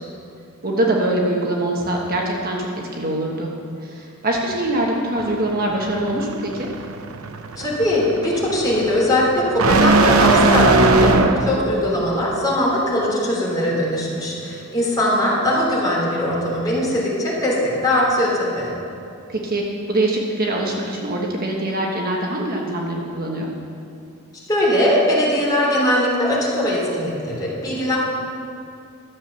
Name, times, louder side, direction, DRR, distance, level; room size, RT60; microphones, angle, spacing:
voice 1, 0.6-3.5 3.8-6.7 19.3-23.5, right 1 dB, 45° right, -1 dB, 1.2 m, -23 dB
sound 1, 5.2-11.6, right 3 dB, 80° right, 0.7 m, -19 dB
voice 2, 7.6-18.7 24.5-28.0, left 1 dB, 20° left, -6 dB, 3.2 m, -20 dB
12.5 x 7.2 x 7.0 m, 2.5 s
head